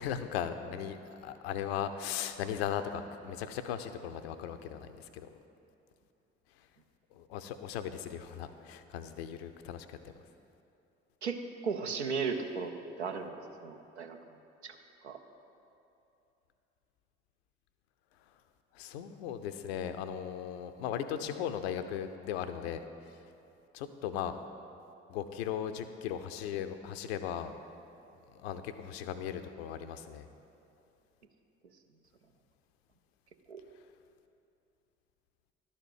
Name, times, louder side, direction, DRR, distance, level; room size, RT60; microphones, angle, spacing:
voice 1, 0.0-5.3 7.1-10.0 18.7-22.8 23.7-24.4 25.1-27.5 28.4-30.3, left 9 dB, 70° left, 10 dB, 0.5 m, -37 dB
voice 2, 11.2-12.7 13.0-13.3 13.6-14.2 14.6-14.8 15.0-15.2 33.5-33.6, right 5 dB, 85° right, 5 dB, 0.5 m, -35 dB
11.5 x 4.3 x 7.1 m, 2.8 s
figure-of-eight pair, 45°, 32 cm